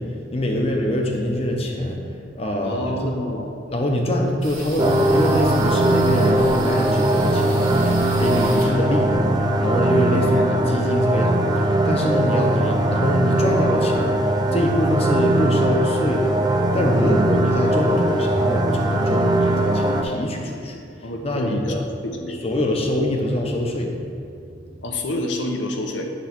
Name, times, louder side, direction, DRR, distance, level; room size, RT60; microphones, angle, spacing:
voice 1, 0.0-2.0 2.3-3.1 3.7-21.8 22.4-23.9, left 1 dB, 30° left, 1 dB, 0.8 m, -24 dB
voice 2, 2.6-3.5 10.2-10.9 16.9-17.2 21.0-21.7 22.0-22.4 24.8-26.0, left 1 dB, 75° left, 3 dB, 0.8 m, -28 dB
sound 1, 4.4-9.9, right 2 dB, 50° right, 1.6 m, -37 dB
sound 2, 4.8-20.0, right 1 dB, 20° right, 0.4 m, -20 dB
8.3 x 3.2 x 5.9 m, 2.5 s
head